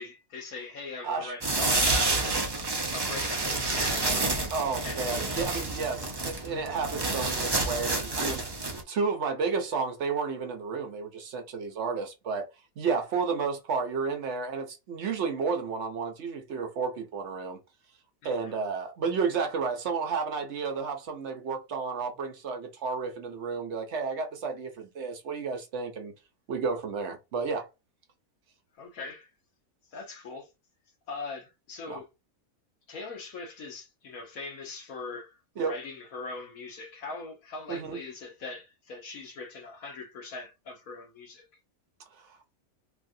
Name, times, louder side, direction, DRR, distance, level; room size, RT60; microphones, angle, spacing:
voice 1, 0.0-2.3 2.9-4.3 4.8-5.2 8.7-8.8 18.2-18.6 28.8-29.3 29.9-30.5 31.1-32.1 32.9-41.4, left 3 dB, 75° left, 1.4 m, -41 dB
sound 1, 1.4-8.8, right 2 dB, 35° right, 0.4 m, -29 dB
voice 2, 4.5-8.4 8.9-12.5 12.8-17.6 18.2-26.1 26.5-27.7 31.9-32.0 35.6-35.7 37.7-38.0 42.2-42.4, right 5 dB, 60° right, 0.9 m, -32 dB
3.3 x 2.4 x 2.6 m
omnidirectional pair, 1.5 m